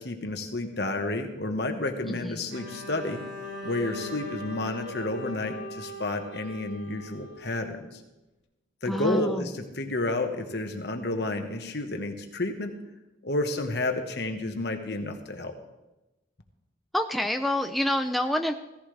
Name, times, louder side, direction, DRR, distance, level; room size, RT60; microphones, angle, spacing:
voice 1, 0.0-3.2 3.6-8.0 8.8-12.7 13.2-15.5, left 2 dB, 60° left, 5 dB, 1.5 m, -31 dB
voice 2, 2.1-2.4 8.9-9.5 16.9-18.5, left 1 dB, ahead, 5 dB, 0.5 m, -27 dB
Bowed string instrument, 2.5-6.6, left 2 dB, 70° right, 2.0 m, -41 dB
Wind instrument woodwind instrument, 3.4-8.0, equal, 85° left, 1.7 m, -43 dB
16.5 x 15.0 x 3.4 m, 1.0 s
head